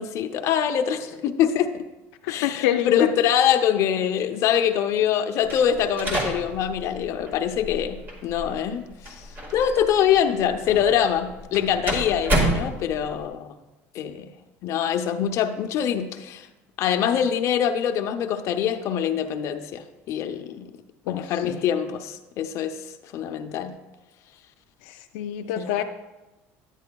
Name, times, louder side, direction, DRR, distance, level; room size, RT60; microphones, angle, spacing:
voice 1, 0.0-1.8 2.3-9.1 9.5-13.5 13.9-14.3 14.6-16.5 16.8-20.6 21.1-22.8 23.1-23.7 25.5-25.8, left 9 dB, 55° left, 6 dB, 0.6 m, -24 dB
voice 2, 2.2-3.1 21.1-21.6 25.1-25.8, left 12 dB, 90° left, 5 dB, 0.4 m, -26 dB
sound 1, 5.4-13.3, right 1 dB, 30° right, 1.7 m, -30 dB
10.5 x 9.0 x 2.3 m, 1.0 s
cardioid pair, 125°, 6 cm